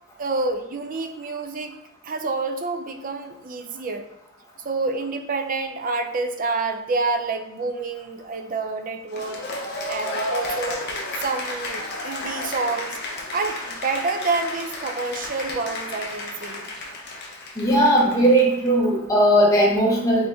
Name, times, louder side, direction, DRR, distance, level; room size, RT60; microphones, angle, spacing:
voice 1, 0.2-1.8 2.0-4.1 4.6-9.4 9.9-10.8 11.2-13.0 13.3-16.7, right 3 dB, 40° right, 7 dB, 0.4 m, -28 dB
Cheering / Applause, 9.1-18.7, left 2 dB, 55° left, 0.7 m, -32 dB
voice 2, 17.6-20.3, right 1 dB, 15° left, -4 dB, 1.0 m, -18 dB
3.9 x 3.4 x 3.4 m, 0.82 s
head